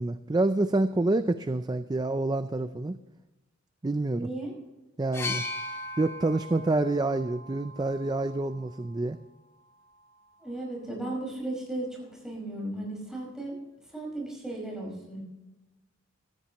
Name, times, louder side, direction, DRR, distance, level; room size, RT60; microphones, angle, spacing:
voice 1, 0.0-3.0 3.8-4.3 5.0-5.4 6.0-9.2, right 2 dB, 20° right, 11 dB, 0.4 m, -27 dB
voice 2, 4.1-4.5 10.4-13.6 13.9-15.2, right 1 dB, 5° right, -1 dB, 5.4 m, -35 dB
sound 1, 5.1-8.9 10.0-10.1, left 3 dB, 15° left, 1.2 m, -39 dB
16.0 x 13.0 x 3.0 m, 1.0 s
head